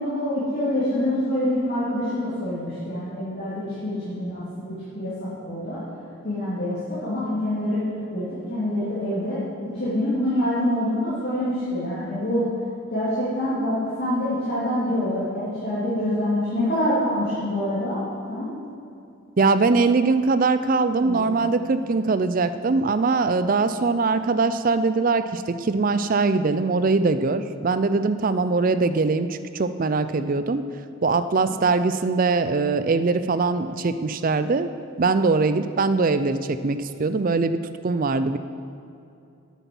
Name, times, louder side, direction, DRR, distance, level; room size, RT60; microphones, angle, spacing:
voice 1, 0.0-5.8 6.2-7.8 8.1-9.4 9.6-12.5 12.9-18.0 18.3-18.5 20.9-21.2 21.7-21.8 31.5-31.6, left 1 dB, 50° left, -12 dB, 2.7 m, -26 dB
voice 2, 19.4-30.6 31.0-34.7 35.0-37.6 37.8-38.4, right 3 dB, 40° right, 11 dB, 0.4 m, -22 dB
9.2 x 8.3 x 6.0 m, 2.6 s
head